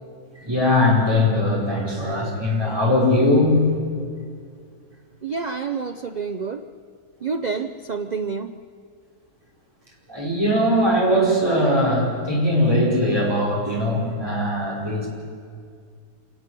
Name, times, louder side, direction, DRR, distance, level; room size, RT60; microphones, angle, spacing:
voice 1, 0.5-3.7 10.1-15.1, left 1 dB, 15° right, -4 dB, 5.3 m, -20 dB
voice 2, 5.2-6.6 7.2-8.5, right 5 dB, 85° right, 9 dB, 0.3 m, -28 dB
27.0 x 12.0 x 9.8 m, 2.2 s
omnidirectional pair, 1.7 m